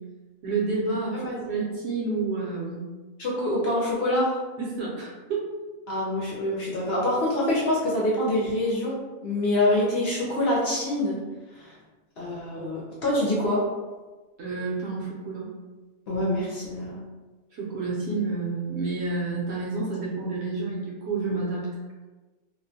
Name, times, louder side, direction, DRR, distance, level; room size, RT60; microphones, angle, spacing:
voice 1, 0.4-2.9 4.6-5.5 14.4-15.5 17.5-21.7, right 3 dB, 65° right, -4 dB, 0.8 m, -29 dB
voice 2, 3.2-4.4 5.9-9.0 9.2-11.2 11.6-11.7 12.2-13.6 16.1-17.0, left 1 dB, 65° left, -5 dB, 0.7 m, -25 dB
2.4 x 2.1 x 2.7 m, 1.2 s
omnidirectional pair, 1.4 m